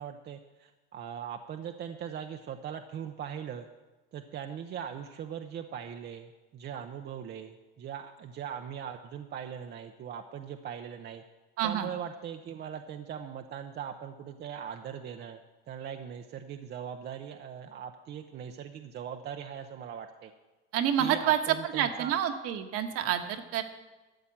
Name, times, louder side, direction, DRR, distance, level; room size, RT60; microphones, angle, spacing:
voice 1, 0.0-3.7 4.1-11.2 11.6-15.4 15.7-20.3 21.0-22.1, right 8 dB, 35° right, 5 dB, 0.7 m, -40 dB
voice 2, 11.6-11.9 20.7-21.4 21.7-23.6, right 10 dB, 55° right, 6 dB, 1.4 m, -28 dB
13.0 x 7.6 x 7.3 m, 1.2 s
supercardioid pair, 115°, 29 cm